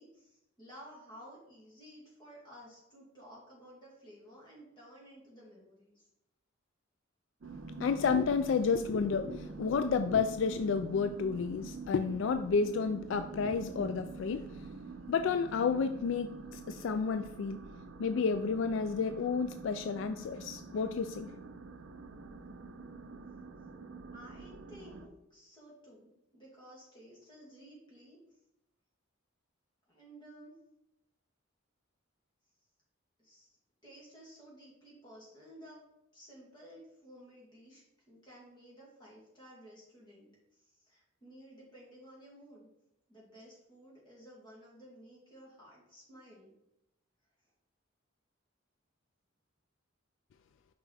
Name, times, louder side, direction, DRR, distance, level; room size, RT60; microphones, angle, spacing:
voice 1, 0.0-6.1 24.1-28.2 29.9-30.5 33.2-33.5 33.8-35.8 36.1-42.7 43.1-46.5, equal, 25° left, -5 dB, 2.5 m, -54 dB
sound 1, 7.4-25.1, right 4 dB, 70° right, 0.5 m, -46 dB
voice 2, 7.8-14.4 15.1-17.6 18.0-21.3, left 5 dB, 65° left, 9 dB, 0.3 m, -31 dB
5.9 x 5.0 x 4.2 m, 0.84 s
head